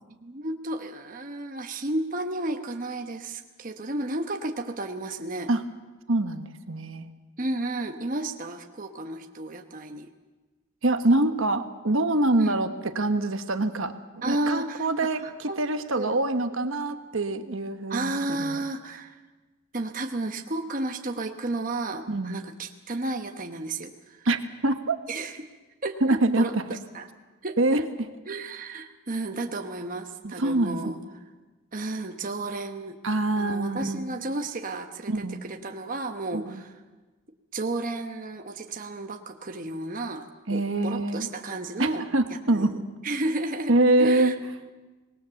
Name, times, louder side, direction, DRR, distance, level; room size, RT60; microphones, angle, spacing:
voice 1, 0.2-5.5 7.4-10.1 12.4-12.8 14.2-14.9 15.2-15.6 15.9-16.1 17.9-19.2 19.7-24.3 25.1-25.5 25.8-27.1 27.4-27.9 28.3-31.0 31.7-33.0 33.4-36.7 37.5-43.7 44.0-44.4, right 2 dB, 35° right, 5 dB, 1.1 m, -32 dB
voice 2, 6.1-7.1 10.8-18.6 22.1-22.4 24.2-24.4 24.6-25.0 26.0-26.6 27.6-27.8 30.2-30.8 33.0-34.1 35.1-35.4 36.3-36.6 40.5-41.3 41.8-42.7 43.7-44.3, right 2 dB, 60° right, 8 dB, 1.2 m, -25 dB
25.5 x 20.0 x 7.0 m, 1.3 s
head